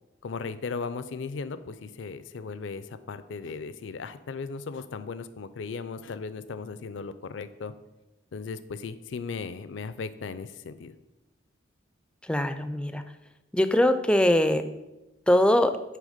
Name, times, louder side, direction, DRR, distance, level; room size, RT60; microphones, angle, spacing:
voice 1, 0.2-7.7 8.3-10.9, left 4 dB, 70° left, 13 dB, 0.4 m, -37 dB
voice 2, 12.3-13.0 13.5-14.6 15.3-15.7, left 1 dB, 5° left, 9 dB, 0.4 m, -22 dB
9.2 x 3.3 x 5.0 m, 1.0 s
head